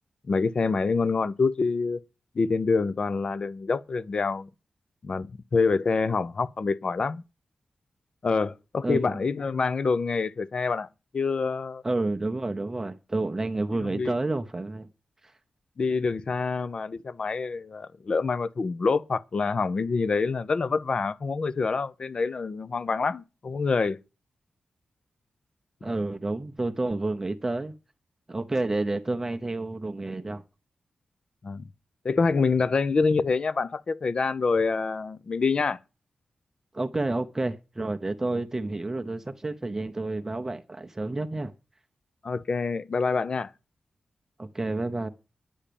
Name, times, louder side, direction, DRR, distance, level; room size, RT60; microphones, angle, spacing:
voice 1, 0.3-2.0 2.4-4.5 5.0-7.2 8.2-10.9 11.1-11.8 13.8-14.2 15.8-24.0 31.4-31.6 32.0-35.8 42.2-43.5, left 4 dB, 40° left, 0.5 m, -26 dB
voice 2, 8.8-9.2 11.8-14.9 25.8-27.7 28.3-30.4 36.7-41.5 44.4-45.1, right 2 dB, 20° right, 0.7 m, -30 dB
10.0 x 7.2 x 6.8 m
wide cardioid pair, 140°, 2 cm